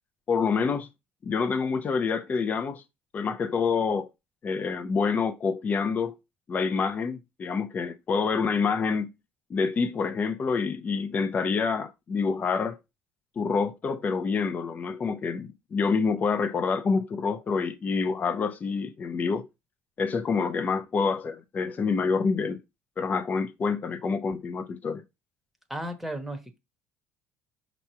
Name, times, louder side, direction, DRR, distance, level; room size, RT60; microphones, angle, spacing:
voice 1, 0.3-0.9 1.2-2.8 3.1-4.1 4.4-6.2 6.5-9.1 9.5-12.8 13.4-19.5 20.0-22.6 23.0-25.0, left 5 dB, 30° left, 0.7 m, -27 dB
voice 2, 25.7-26.6, right 1 dB, 5° right, 1.2 m, -34 dB
5.7 x 3.0 x 5.5 m
cardioid pair, 125°, 5 cm